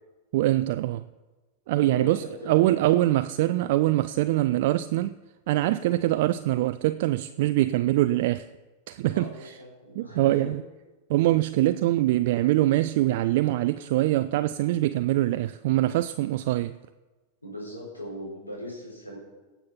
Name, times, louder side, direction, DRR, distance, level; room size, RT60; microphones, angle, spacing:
voice 1, 0.3-1.0 1.7-5.1 5.5-8.5 8.9-9.5 10.0-10.6 11.1-16.8, right 15 dB, 50° right, 0.4 m, -23 dB
voice 2, 1.8-3.0 9.1-10.4 17.4-19.2, equal, 80° left, 5.0 m, -39 dB
17.5 x 7.2 x 5.7 m
figure-of-eight pair, 90°, 0 cm